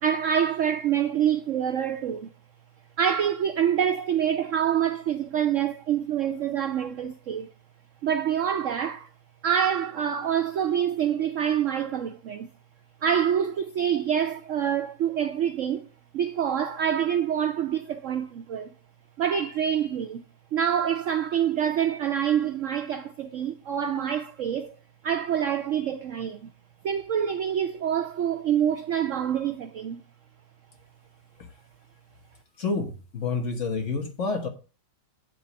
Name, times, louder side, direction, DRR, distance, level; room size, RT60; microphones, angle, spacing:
voice 1, 0.0-2.3 3.0-7.5 8.0-9.1 9.4-12.5 13.0-15.9 16.1-18.7 19.2-20.2 20.5-24.7 25.0-26.5 26.8-30.0, right 9 dB, 70° right, 0.7 m, -26 dB
voice 2, 32.6-34.5, left 4 dB, 45° left, 1.5 m, -29 dB
8.1 x 3.6 x 6.7 m
omnidirectional pair, 1.9 m